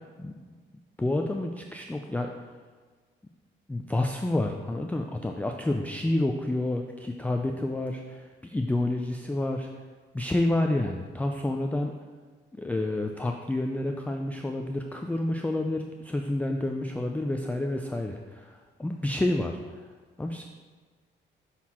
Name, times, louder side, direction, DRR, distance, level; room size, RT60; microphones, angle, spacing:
voice 1, 1.0-2.3 3.7-9.7 10.1-11.9 12.5-19.9 20.2-20.4, left 1 dB, 5° left, 3 dB, 0.3 m, -29 dB
6.2 x 4.1 x 4.3 m, 1.5 s
cardioid pair, 90°, 20 cm